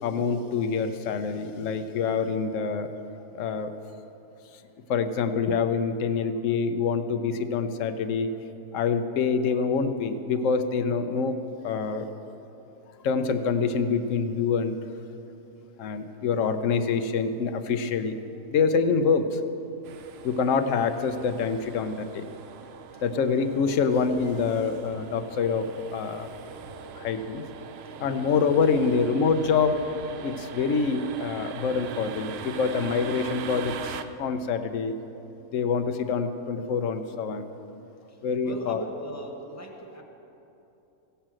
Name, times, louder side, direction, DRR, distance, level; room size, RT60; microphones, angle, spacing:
voice 1, 0.0-2.9 3.3-3.7 4.9-8.3 8.7-11.4 11.6-12.1 13.0-14.8 15.8-18.2 18.5-19.4 20.2-22.2 23.0-25.7 25.9-26.3 27.0-27.4 28.0-29.8 30.2-34.9 35.5-37.5 38.2-38.8, left 5 dB, 70° left, 9 dB, 1.0 m, -26 dB
sound 1, 19.8-34.0, right 6 dB, 60° right, 0.7 m, -41 dB
voice 2, 38.4-40.0, right 1 dB, 10° left, 0 dB, 1.2 m, -38 dB
16.5 x 5.6 x 7.5 m, 3.0 s
omnidirectional pair, 1.4 m